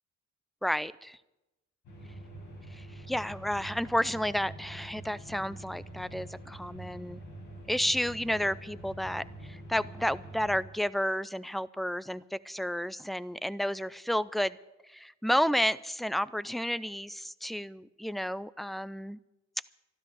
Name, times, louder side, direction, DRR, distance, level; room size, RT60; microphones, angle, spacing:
voice 1, 0.6-1.2 2.7-7.2 7.7-14.6 14.9-19.2, equal, ahead, 19 dB, 0.4 m, -31 dB
sound 1, 1.8-10.6, right 1 dB, 70° left, 5.3 m, -46 dB
13.0 x 12.5 x 7.7 m, 0.98 s
cardioid pair, 90°, 30 cm